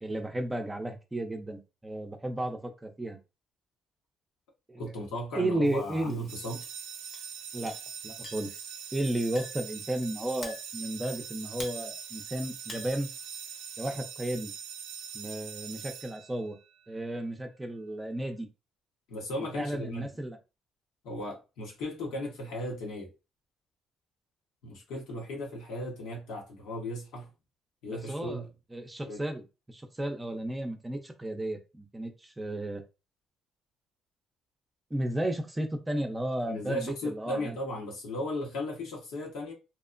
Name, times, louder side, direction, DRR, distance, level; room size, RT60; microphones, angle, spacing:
voice 1, 0.0-3.2 4.7-4.9 5.4-6.2 7.5-7.8 8.0-13.1 13.8-14.5 15.1-16.6 16.9-18.5 19.5-20.4 27.8-28.4 28.7-32.8 34.9-37.6, right 1 dB, 15° right, 0.6 m, -33 dB
voice 2, 4.8-6.6 19.1-20.1 21.0-23.1 24.6-27.3 27.8-28.5 29.0-29.2 36.5-39.5, left 1 dB, 85° left, 1.1 m, -36 dB
Chink clink, 5.6-14.0, left 3 dB, 40° left, 0.9 m, -50 dB
sound 1, 6.3-16.7, right 7 dB, 85° right, 0.4 m, -42 dB
2.9 x 2.0 x 2.5 m
supercardioid pair, 75°, 0 cm